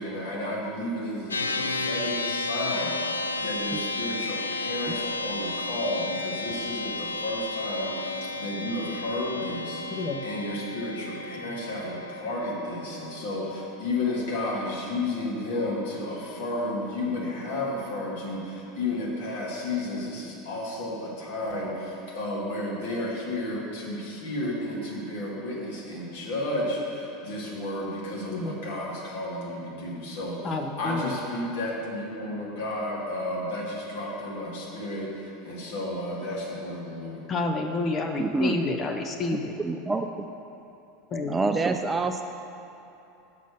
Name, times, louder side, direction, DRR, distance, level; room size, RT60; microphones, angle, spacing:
voice 1, 0.0-30.4 30.8-37.2, left 1 dB, 65° left, -4 dB, 1.8 m, -32 dB
sound 1, 1.3-14.8, left 2 dB, 90° left, 0.3 m, -33 dB
voice 2, 9.9-10.2 28.3-28.6 30.4-31.2 37.3-39.5 41.1-41.4, left 3 dB, 35° left, 4 dB, 0.6 m, -29 dB
voice 3, 38.2-38.6 39.6-40.3 41.3-42.2, right 3 dB, 20° right, 6 dB, 0.3 m, -27 dB
6.8 x 5.0 x 6.5 m, 2.8 s
figure-of-eight pair, 80°, 0 cm